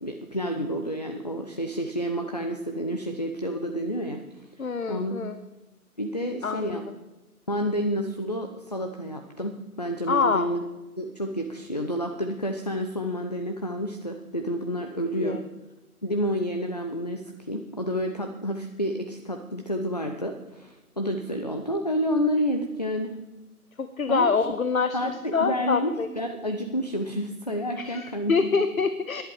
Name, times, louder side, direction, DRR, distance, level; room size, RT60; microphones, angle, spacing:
voice 1, 0.0-5.2 6.0-6.8 7.5-10.6 11.0-15.4 16.0-23.2 24.1-24.3 24.9-28.3, equal, 30° left, 5 dB, 0.6 m, -29 dB
voice 2, 4.6-5.4 6.4-6.9 10.1-10.5 15.2-15.4 23.8-25.0 25.3-26.1 27.8-29.2, left 5 dB, 65° left, 11 dB, 0.9 m, -25 dB
19.0 x 10.5 x 4.9 m, 1.1 s
figure-of-eight pair, 145°, 46 cm